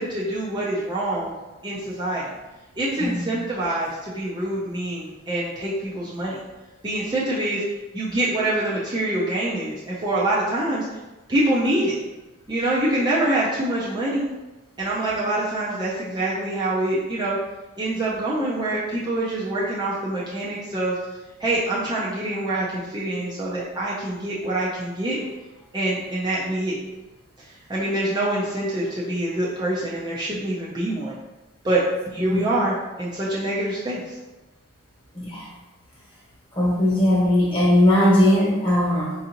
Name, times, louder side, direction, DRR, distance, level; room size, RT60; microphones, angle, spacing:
voice 1, 0.0-1.3 1.6-2.3 2.8-6.4 6.8-7.6 7.9-10.9 11.3-12.0 12.5-14.3 14.8-17.4 17.8-21.0 21.4-25.2 25.7-26.8 27.7-31.1 31.6-31.8 32.1-34.2, right 1 dB, 20° right, -7 dB, 0.5 m, -25 dB
voice 2, 35.1-35.5 36.5-39.1, left 1 dB, 25° left, -6 dB, 1.1 m, -19 dB
4.6 x 2.6 x 2.8 m, 1.1 s
head